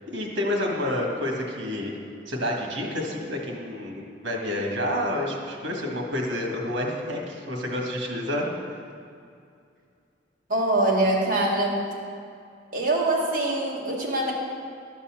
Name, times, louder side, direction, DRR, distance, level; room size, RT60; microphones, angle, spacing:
voice 1, 0.0-1.9 2.3-8.5, left 1 dB, 75° right, 0 dB, 1.7 m, -29 dB
voice 2, 10.5-11.8 12.7-14.3, right 1 dB, 45° right, -3 dB, 1.7 m, -23 dB
12.5 x 4.2 x 7.3 m, 2.4 s
head